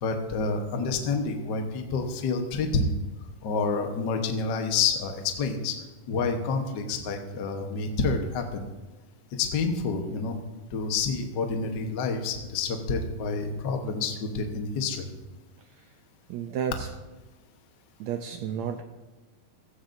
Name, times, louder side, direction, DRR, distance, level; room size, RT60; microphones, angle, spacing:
voice 1, 0.0-2.9 3.4-5.8 6.1-8.7 9.3-10.4 10.7-15.1, left 4 dB, 75° left, 4 dB, 0.9 m, -28 dB
voice 2, 16.3-16.9 18.0-18.8, right 8 dB, 85° right, 7 dB, 1.6 m, -31 dB
16.0 x 15.0 x 2.6 m, 1.2 s
omnidirectional pair, 3.8 m